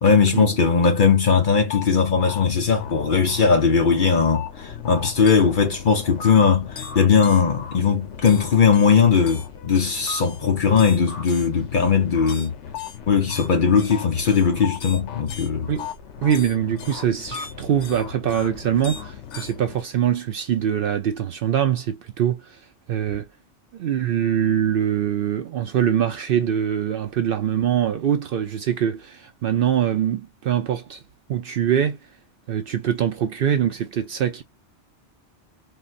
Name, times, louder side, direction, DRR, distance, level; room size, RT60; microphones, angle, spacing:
voice 1, 0.0-12.5 13.1-15.7, left 6 dB, 50° left, 0.8 m, -19 dB
sound 1, 1.7-19.8, left 7 dB, 80° left, 1.1 m, -36 dB
voice 2, 16.2-22.6 22.9-23.3 23.7-31.0 31.3-32.0 32.5-34.4, right 9 dB, 60° right, 0.6 m, -23 dB
3.8 x 2.1 x 2.3 m
omnidirectional pair, 1.2 m